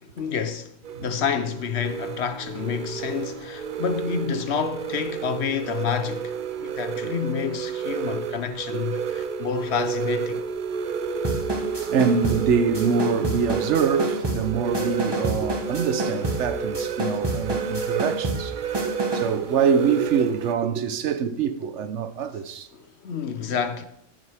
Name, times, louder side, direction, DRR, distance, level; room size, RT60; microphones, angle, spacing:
voice 1, 0.0-0.7 1.0-10.4 22.7-23.8, left 7 dB, 65° left, 1.0 m, -29 dB
sound 1, 0.8-20.5, right 6 dB, 55° right, 0.6 m, -31 dB
sound 2, 11.2-19.4, right 1 dB, 20° right, 1.1 m, -30 dB
voice 2, 11.4-22.7, right 6 dB, 70° right, 1.0 m, -25 dB
13.5 x 7.4 x 3.4 m
omnidirectional pair, 1.3 m